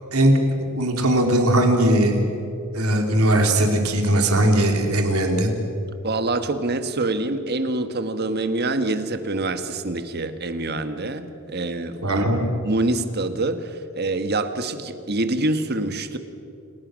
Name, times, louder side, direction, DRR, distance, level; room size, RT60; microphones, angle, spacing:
voice 1, 0.8-2.2 2.7-5.5 12.0-12.4, right 1 dB, 80° right, 3 dB, 3.3 m, -19 dB
voice 2, 6.0-16.2, right 2 dB, 45° right, 9 dB, 1.4 m, -26 dB
29.0 x 18.0 x 6.4 m, 2.8 s
head